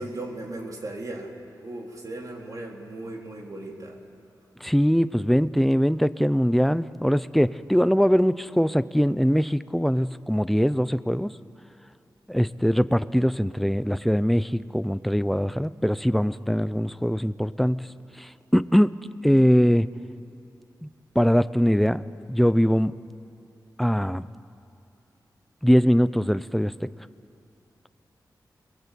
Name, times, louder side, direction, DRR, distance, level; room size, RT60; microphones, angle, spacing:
voice 1, 0.0-4.0, right 2 dB, 50° right, 0 dB, 3.8 m, -37 dB
voice 2, 4.6-11.3 12.3-17.9 18.2-19.0 19.2-19.9 20.8-20.9 21.1-22.0 22.3-22.9 23.8-24.3 25.6-26.9, equal, ahead, 14 dB, 0.6 m, -22 dB
30.0 x 22.5 x 8.4 m, 2.6 s
wide cardioid pair, 110°, 7 cm